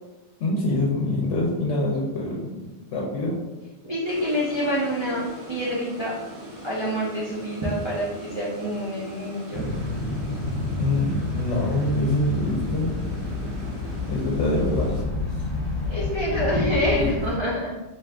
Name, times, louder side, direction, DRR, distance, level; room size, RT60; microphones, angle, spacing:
voice 1, 0.4-2.6 2.9-3.4 10.7-12.9 14.1-15.1 15.4-15.5, left 1 dB, 85° left, -3 dB, 0.9 m, -25 dB
voice 2, 3.8-6.1 6.6-9.7 15.9-17.7, equal, 40° right, -6 dB, 0.4 m, -26 dB
sound 1, 4.0-15.0, right 1 dB, 55° right, 1.1 m, -41 dB
sound 2, 9.5-17.3, left 2 dB, 40° left, 0.9 m, -29 dB
2.6 x 2.4 x 3.3 m, 1.1 s
omnidirectional pair, 1.2 m